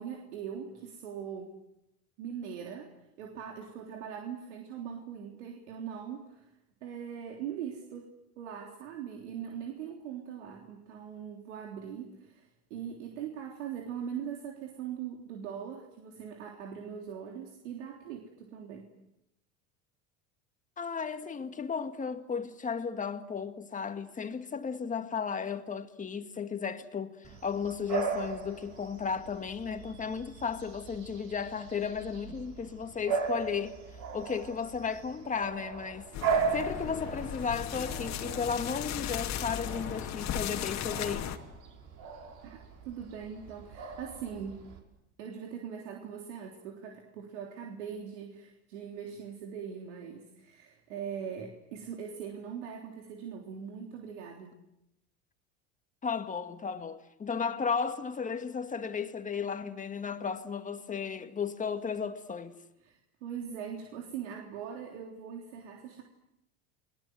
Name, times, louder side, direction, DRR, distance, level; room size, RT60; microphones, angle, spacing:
voice 1, 0.0-1.5 2.2-2.9 3.2-6.5 6.8-8.1 8.4-18.9 42.4-42.6 42.9-44.7 45.2-54.5 62.8-66.0, right 8 dB, 85° right, 3.6 m, -41 dB
voice 2, 20.8-33.8 34.1-36.1 36.5-41.3 56.0-62.6, left 6 dB, 20° left, 2.0 m, -34 dB
Bark / Bird vocalization bird call bird song, 27.2-44.8, right 5 dB, 55° right, 5.8 m, -38 dB
sound 1, 36.1-41.4, left 10 dB, 50° left, 2.5 m, -36 dB
29.5 x 21.0 x 7.9 m
supercardioid pair, 110°, 35 cm